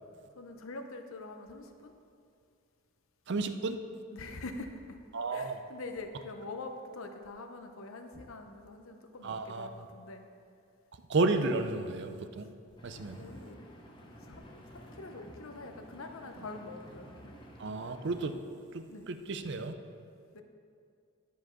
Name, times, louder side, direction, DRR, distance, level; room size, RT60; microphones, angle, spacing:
voice 1, 0.4-1.9 4.1-5.0 5.3-10.2 13.2-13.6 14.2-17.1 18.9-19.1 20.3-20.4, left 3 dB, 75° left, 5 dB, 0.8 m, -44 dB
voice 2, 3.3-3.8 5.1-5.5 9.2-9.7 11.1-12.5 12.8-13.2 17.6-18.4 18.7-19.7, right 3 dB, 55° right, 9 dB, 0.5 m, -32 dB
Engine, 12.8-18.3, equal, 20° left, 0.9 m, -51 dB
10.0 x 5.2 x 5.8 m, 2.4 s
head